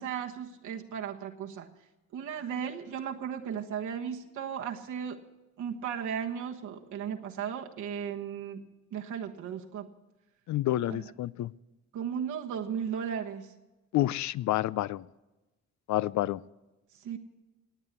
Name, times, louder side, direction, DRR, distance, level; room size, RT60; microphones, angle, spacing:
voice 1, 0.0-1.7 2.1-5.2 5.6-8.6 8.9-9.9 10.9-11.0 11.9-13.5 16.9-17.2, right 8 dB, 75° right, 1 dB, 1.4 m, -35 dB
voice 2, 10.5-11.5 13.9-15.1 15.9-16.4, left 15 dB, 70° left, 20 dB, 0.5 m, -29 dB
18.0 x 9.0 x 8.2 m, 1.1 s
cardioid pair, 90°, 30 cm